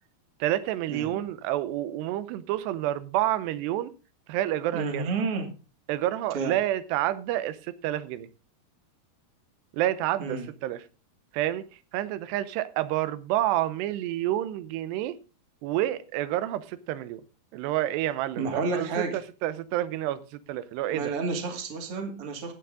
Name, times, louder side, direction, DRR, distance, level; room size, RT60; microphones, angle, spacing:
voice 1, 0.4-3.9 4.3-5.1 5.9-8.3 9.7-10.9 11.3-15.2 15.6-17.2 17.5-21.1, right 13 dB, 90° right, 2.9 m, -29 dB
voice 2, 4.7-5.5 6.3-6.6 10.2-10.5 18.4-19.2 20.9-22.5, right 4 dB, 40° right, 2.5 m, -30 dB
13.5 x 9.4 x 3.7 m
omnidirectional pair, 4.8 m